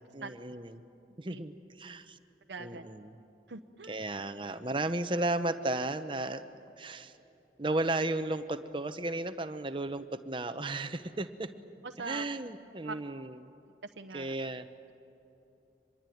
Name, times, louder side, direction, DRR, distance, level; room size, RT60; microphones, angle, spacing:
voice 1, 0.1-0.8 1.2-2.2 2.6-3.2 3.9-6.4 6.8-7.1 7.6-11.5 12.0-13.4 14.1-14.7, right 2 dB, 30° right, 10 dB, 0.9 m, -34 dB
voice 2, 2.5-2.8 3.5-4.0 11.8-12.2 12.8-13.0 14.0-14.3, right 4 dB, 80° right, 4 dB, 0.9 m, -42 dB
25.0 x 22.0 x 9.3 m, 3.0 s
head